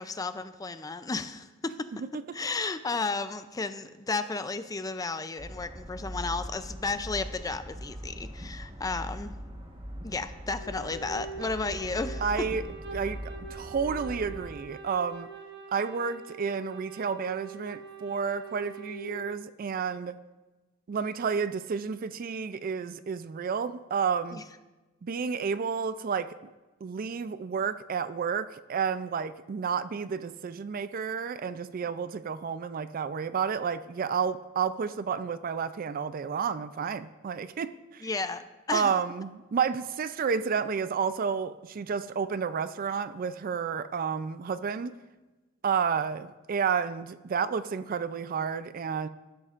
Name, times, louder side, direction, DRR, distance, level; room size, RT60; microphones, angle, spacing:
voice 1, 0.0-2.0 2.3-9.3 10.0-12.5 24.3-24.4 38.0-38.9, left 3 dB, 20° left, 11 dB, 0.4 m, -33 dB
sound 1, 5.4-14.5, equal, 25° right, 1.2 m, -41 dB
Wind instrument woodwind instrument, 10.6-19.2, right 4 dB, 60° right, 1.0 m, -43 dB
voice 2, 12.2-12.6 12.9-15.3 15.7-20.2 20.9-24.4 25.0-26.3 26.8-38.0 38.7-44.9 45.6-49.1, right 6 dB, 45° right, 14 dB, 0.4 m, -31 dB
12.5 x 12.0 x 2.5 m, 1.2 s
head